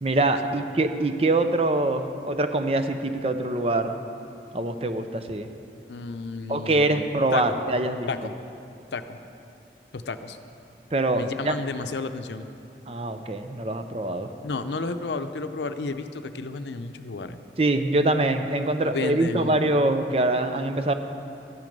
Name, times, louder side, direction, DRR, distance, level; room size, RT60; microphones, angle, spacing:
voice 1, 0.0-4.0 4.5-5.5 6.5-8.1 10.9-11.5 12.9-14.3 17.6-20.9, right 2 dB, 35° right, 8 dB, 0.6 m, -24 dB
voice 2, 5.9-7.0 7.3-7.6 8.1-8.3 8.9-9.2 9.9-10.4 11.1-12.5 14.4-17.4 18.9-19.6, left 3 dB, 85° left, 9 dB, 0.6 m, -32 dB
12.5 x 11.0 x 5.3 m, 2.6 s
head